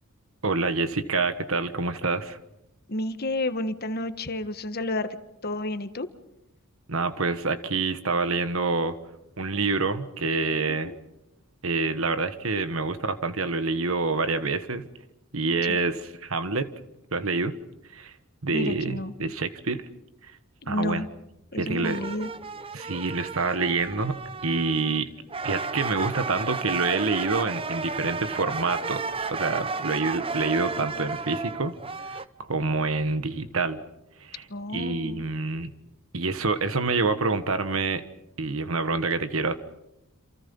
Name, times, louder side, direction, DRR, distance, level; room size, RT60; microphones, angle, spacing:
voice 1, 0.4-2.4 6.9-9.0 9.4-10.9 11.6-14.9 15.3-16.7 17.1-17.6 17.9-18.1 18.4-19.9 20.2-20.4 20.7-21.1 21.5-22.0 22.7-25.1 25.4-29.0 29.3-31.7 32.1-33.8 34.2-34.4 34.7-35.7 36.1-38.0 38.4-39.5, right 3 dB, 70° right, 10 dB, 1.4 m, -27 dB
voice 2, 2.9-5.1 5.4-6.1 10.8-10.9 15.6-15.8 18.5-19.1 20.6-21.1 21.5-22.3 30.8-30.9 34.5-35.2, left 1 dB, 45° left, 9 dB, 1.5 m, -31 dB
sound 1, 21.8-25.0 25.3-32.2, right 4 dB, 25° right, 0.8 m, -33 dB
28.5 x 27.5 x 5.5 m, 0.87 s
head